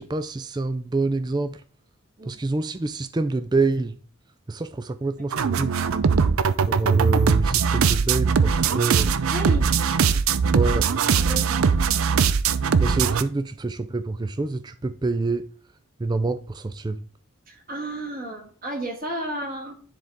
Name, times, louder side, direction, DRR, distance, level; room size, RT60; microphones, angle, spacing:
voice 1, 0.0-1.6 2.3-4.0 4.5-5.7 6.7-9.1 10.1-10.2 10.5-10.9 12.8-15.4 16.0-17.0, right 3 dB, 20° right, 0.3 m, -26 dB
sound 1, 5.3-13.2, right 6 dB, 85° right, 0.5 m, -21 dB
voice 2, 9.3-9.7 11.2-11.6 17.5-19.7, right 1 dB, 40° right, 1.8 m, -32 dB
10.0 x 4.0 x 3.5 m
head